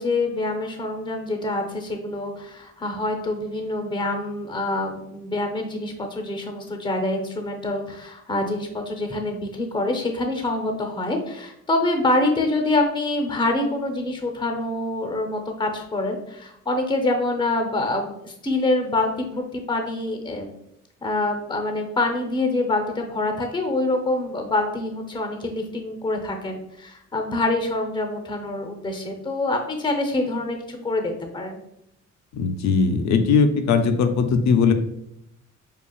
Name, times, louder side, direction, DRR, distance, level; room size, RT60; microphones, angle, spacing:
voice 1, 0.0-20.5 21.0-31.6, left 2 dB, 15° left, 4 dB, 0.7 m, -26 dB
voice 2, 32.3-34.7, left 5 dB, 65° left, 8 dB, 0.5 m, -19 dB
5.0 x 2.4 x 2.3 m, 0.80 s
cardioid pair, 90°, 30 cm